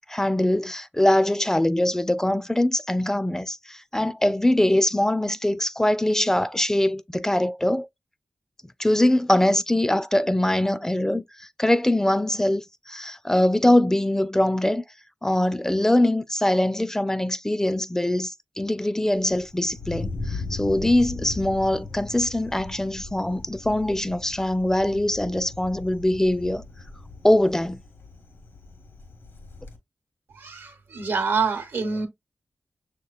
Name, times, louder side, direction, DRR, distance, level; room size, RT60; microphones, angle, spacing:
voice 1, 0.1-7.9 8.8-14.8 15.2-26.6 27.2-27.8, left 1 dB, 10° left, 0.3 m, -22 dB
Thunder, 19.1-29.8, left 3 dB, 80° left, 1.1 m, -38 dB
voice 2, 30.3-32.1, right 5 dB, 75° right, 0.9 m, -26 dB
6.3 x 2.9 x 2.3 m
cardioid pair, 55°, 4 cm